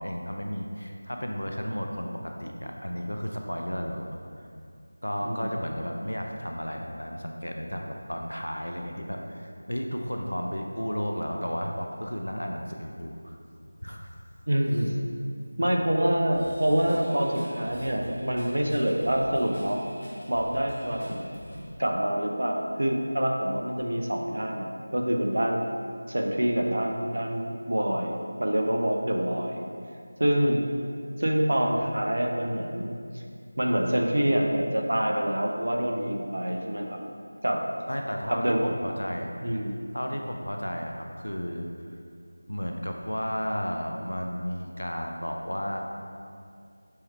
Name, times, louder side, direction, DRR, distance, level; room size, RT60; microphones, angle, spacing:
voice 1, 0.0-4.5 5.0-13.4 13.8-14.1 37.9-39.3 39.9-41.7 41.9-42.0 42.5-45.8, equal, 80° left, 2 dB, 0.4 m, -33 dB
voice 2, 14.5-15.0 15.6-19.8 20.3-21.3 21.8-25.6 26.1-29.6 30.2-30.7 31.2-33.2 33.6-37.0 37.4-37.6 38.3-38.6 39.4-39.8, equal, 60° right, 1 dB, 0.5 m, -26 dB
Drum kit / Drum, 16.3-21.7, equal, 40° left, 0.9 m, -44 dB
4.6 x 3.2 x 3.2 m, 2.3 s
figure-of-eight pair, 170°, 0 cm